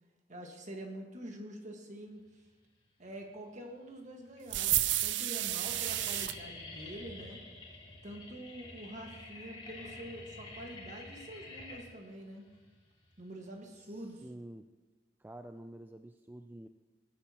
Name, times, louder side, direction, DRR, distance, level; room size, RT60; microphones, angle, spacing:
voice 1, 0.3-2.3 3.0-7.4 8.0-12.5 13.2-14.2, right 1 dB, 45° right, 2 dB, 1.7 m, -46 dB
sound 1, 3.0-3.6 4.3-4.4 4.7-5.0 5.3-14.2, left 2 dB, 30° left, 2.4 m, -49 dB
sound 2, 4.5-6.4, right 13 dB, 85° right, 0.5 m, -31 dB
voice 2, 13.8-14.7 15.2-16.7, right 1 dB, 10° right, 7 dB, 0.4 m, -49 dB
19.0 x 9.9 x 3.0 m, 1.3 s
head